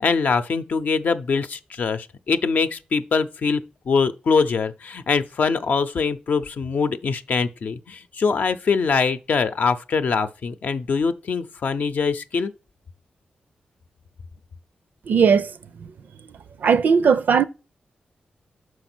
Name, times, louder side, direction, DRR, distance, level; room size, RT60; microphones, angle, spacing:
voice 1, 0.0-12.5, left 5 dB, 65° left, 0.6 m, -23 dB
voice 2, 15.1-15.5 16.6-17.4, right 6 dB, 75° right, 0.5 m, -17 dB
5.9 x 4.7 x 6.1 m
cardioid pair, 80°, 3 cm